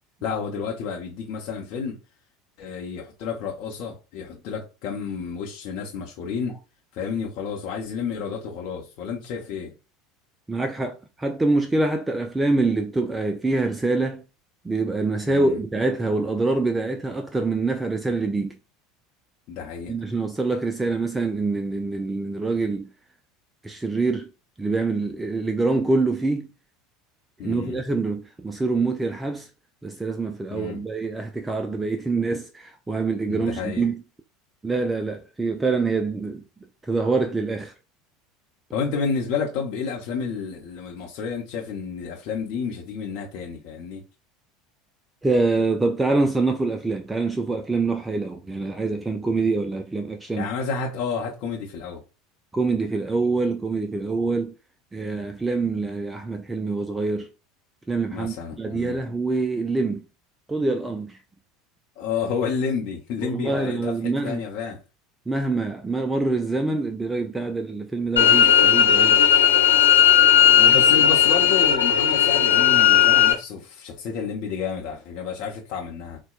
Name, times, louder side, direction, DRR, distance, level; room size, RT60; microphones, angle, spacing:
voice 1, 0.2-2.0 2.6-6.6 6.9-9.7 15.3-15.6 19.5-20.0 27.4-27.8 30.5-30.8 33.3-33.8 38.7-44.0 50.4-52.0 58.1-59.0 62.0-64.8 70.4-76.2, left 6 dB, 55° left, 0.7 m, -30 dB
voice 2, 10.5-14.2 14.6-18.6 19.9-22.9 23.6-24.3 24.6-26.5 27.4-29.5 29.8-34.0 34.6-36.4 36.8-37.7 45.2-50.5 52.5-54.5 54.9-57.3 57.9-60.0 60.5-61.2 63.2-64.4 65.3-69.2 70.6-70.8, right 3 dB, 15° right, 0.4 m, -25 dB
sound 1, 68.2-73.3, left 10 dB, 90° left, 0.9 m, -16 dB
4.1 x 2.2 x 2.4 m
figure-of-eight pair, 75°, 0 cm